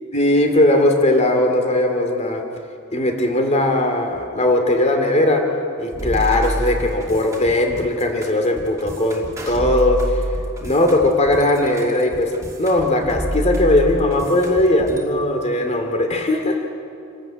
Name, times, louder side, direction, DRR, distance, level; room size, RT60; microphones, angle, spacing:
voice 1, 0.1-2.4 2.9-5.4 5.8-10.2 10.6-12.3 12.6-16.7, left 1 dB, 35° left, 4 dB, 2.5 m, -18 dB
sound 1, 5.9-15.0, right 1 dB, 15° right, 2.7 m, -28 dB
28.0 x 13.0 x 8.9 m, 2.5 s
head